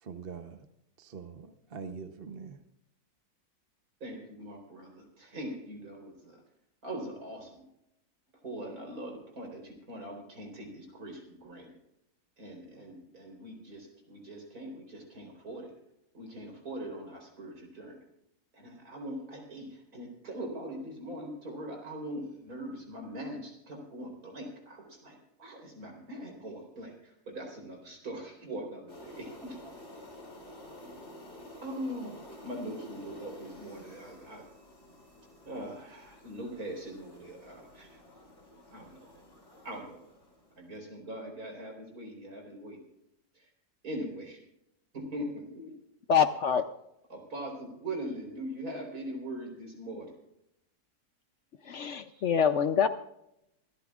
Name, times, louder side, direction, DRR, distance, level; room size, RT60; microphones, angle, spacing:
voice 1, 0.0-0.7 1.0-2.6, right 5 dB, 45° right, 7 dB, 1.0 m, -43 dB
voice 2, 4.0-6.4 6.8-7.6 8.4-11.7 12.4-15.7 16.1-18.0 18.5-29.6 31.6-34.5 35.5-38.0 38.7-39.1 39.6-40.0 40.5-42.8 43.3-43.5 43.8-44.4 44.9-45.7 47.1-50.1 52.1-52.3, right 1 dB, 70° right, 1 dB, 4.6 m, -41 dB
sound 1, 28.9-40.7, left 1 dB, 45° left, 3.4 m, -51 dB
voice 3, 46.1-46.6 51.6-52.9, left 7 dB, 60° left, 9 dB, 0.8 m, -25 dB
25.0 x 14.0 x 2.4 m, 0.82 s
omnidirectional pair, 1.6 m